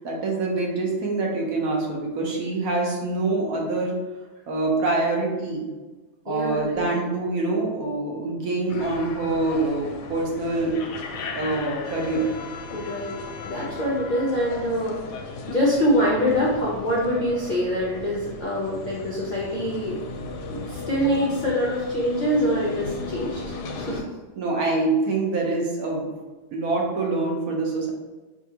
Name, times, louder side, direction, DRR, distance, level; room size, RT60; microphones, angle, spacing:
voice 1, 0.0-4.0 4.5-5.7 6.2-10.8 11.3-12.3 24.3-26.1 26.5-27.9, right 3 dB, 65° right, -1 dB, 1.3 m, -25 dB
voice 2, 6.3-6.8 12.7-13.2 13.5-15.0 15.5-20.0 20.5-24.0, equal, 55° left, -5 dB, 0.5 m, -25 dB
sound 1, 8.7-24.0, left 4 dB, 90° left, 1.2 m, -35 dB
5.1 x 2.6 x 2.8 m, 1.2 s
omnidirectional pair, 1.7 m